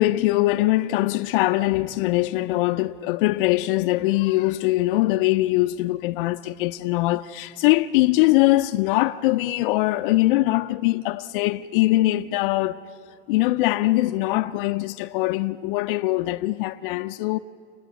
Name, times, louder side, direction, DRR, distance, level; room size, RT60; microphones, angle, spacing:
voice 1, 0.0-12.8 13.3-17.4, left 18 dB, 65° left, 0.5 m, -22 dB
29.0 x 10.0 x 9.1 m
supercardioid pair, 165°, 29 cm